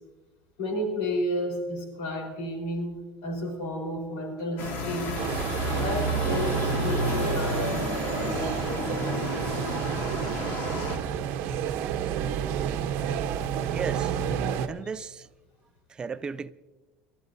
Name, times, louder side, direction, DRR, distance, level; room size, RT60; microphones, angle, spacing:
voice 1, 0.6-5.1 5.7-9.4, left 1 dB, 80° left, 4.2 m, -32 dB
sound 1, 4.6-11.0, left 2 dB, 50° left, 2.1 m, -31 dB
sound 2, 5.2-14.7, right 9 dB, 55° right, 0.9 m, -30 dB
voice 2, 13.7-14.2 14.7-15.3 15.9-16.5, right 5 dB, 20° right, 0.3 m, -35 dB
27.5 x 12.5 x 2.7 m
cardioid pair, 165°, 5 cm